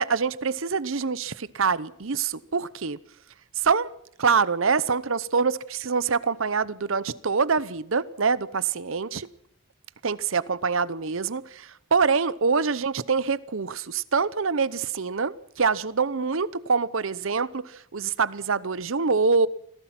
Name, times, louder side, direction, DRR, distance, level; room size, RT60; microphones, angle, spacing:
voice 1, 0.0-3.0 3.6-3.9 4.2-9.3 10.0-19.5, right 5 dB, 70° right, 0.8 m, -25 dB
25.5 x 17.5 x 5.9 m
head